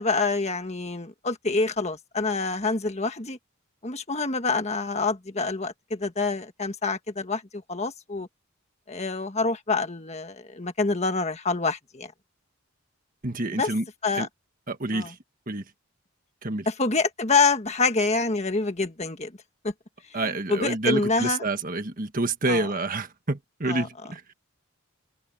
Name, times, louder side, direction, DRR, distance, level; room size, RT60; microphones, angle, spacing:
voice 1, 0.0-3.4 3.8-8.3 8.9-12.1 13.5-13.7 14.0-14.3 14.9-15.1 16.6-19.3 19.6-19.7 20.5-21.4 22.5-22.7 23.6-23.9, left 3 dB, 30° left, 1.5 m, -26 dB
voice 2, 13.2-13.9 14.1-14.3 14.7-15.2 15.5-15.6 16.4-16.7 20.1-24.3, right 2 dB, 40° right, 1.5 m, -28 dB
head